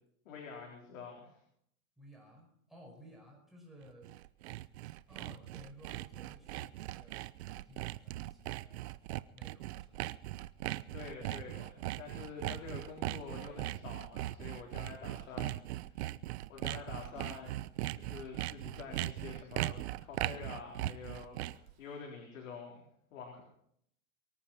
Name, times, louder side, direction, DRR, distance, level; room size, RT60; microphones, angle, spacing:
voice 1, 0.2-1.4 10.9-16.0 16.5-22.8 23.1-23.4, left 6 dB, 65° left, -1 dB, 4.3 m, -47 dB
voice 2, 2.0-4.1 5.1-8.9 9.3-10.1, equal, ahead, -1 dB, 5.2 m, -57 dB
Sawing, 3.9-21.7, right 16 dB, 50° right, 0.7 m, -39 dB
23.5 x 8.8 x 5.7 m, 0.70 s
hypercardioid pair, 145°, 42 cm